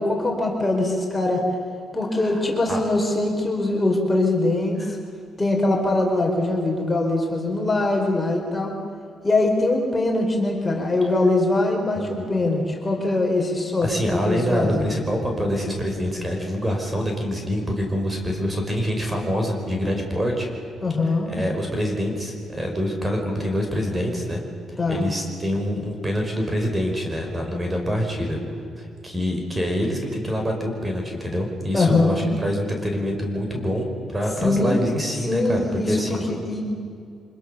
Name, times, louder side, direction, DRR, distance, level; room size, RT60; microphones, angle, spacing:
voice 1, 0.0-1.4 1.9-4.8 5.4-8.7 9.2-14.9 20.8-21.3 24.8-25.0 31.7-32.2 34.4-34.8 35.3-36.6, left 2 dB, 20° left, 1 dB, 4.6 m, -22 dB
voice 2, 2.2-2.8 4.8-4.9 12.0-12.2 13.8-20.5 21.0-24.4 24.9-28.4 28.8-36.3, equal, 20° right, 2 dB, 5.4 m, -26 dB
25.5 x 21.5 x 7.0 m, 2.4 s
cardioid pair, 90°, 0 cm